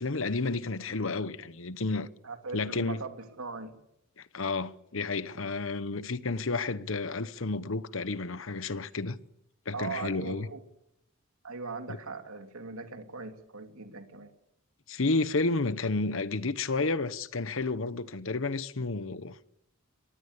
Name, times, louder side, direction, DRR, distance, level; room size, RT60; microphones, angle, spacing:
voice 1, 0.0-2.1 2.5-3.0 4.2-9.2 9.7-10.5 11.9-12.0 14.9-19.4, left 3 dB, 65° left, 1.0 m, -31 dB
voice 2, 2.2-3.8 9.7-10.6 11.4-14.3, right 4 dB, 85° right, 2.9 m, -40 dB
23.0 x 20.0 x 8.3 m
head